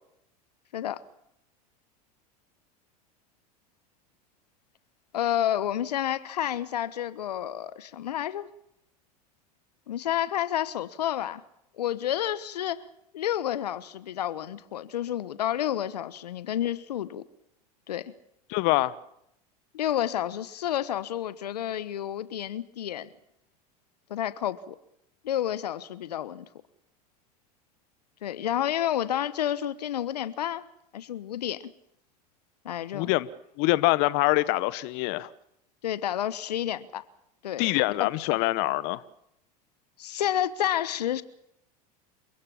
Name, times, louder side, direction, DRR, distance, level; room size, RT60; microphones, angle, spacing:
voice 1, 5.1-8.5 9.9-11.4 11.8-12.8 13.1-17.2 17.9-18.1 19.7-23.1 24.1-24.7 25.2-26.5 28.2-30.6 30.9-31.7 32.6-33.1 35.8-37.0 37.4-37.7 38.0-38.1 40.0-41.2, left 11 dB, 85° left, 1.2 m, -30 dB
voice 2, 18.5-18.9 32.9-33.3 33.6-35.3 37.6-39.0, left 19 dB, 60° left, 1.1 m, -24 dB
28.5 x 17.0 x 7.2 m
hypercardioid pair, 90°, 20 cm